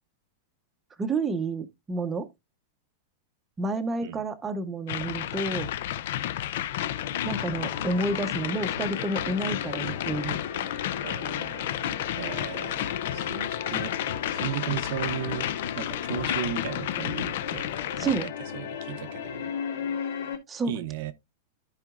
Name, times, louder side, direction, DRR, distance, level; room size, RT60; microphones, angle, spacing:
voice 1, 1.0-2.3 3.6-5.7 7.2-10.4 18.0-18.3 20.5-20.7, right 3 dB, 10° right, 0.7 m, -30 dB
sound 1, 4.9-18.3, left 12 dB, 55° left, 0.5 m, -32 dB
sound 2, 6.7-20.4, left 7 dB, 75° left, 2.6 m, -36 dB
voice 2, 11.0-11.8 12.2-13.9 14.3-15.5 15.7-19.5 20.6-21.1, right 11 dB, 45° right, 0.7 m, -36 dB
14.0 x 4.9 x 2.4 m
supercardioid pair, 175°, 0 cm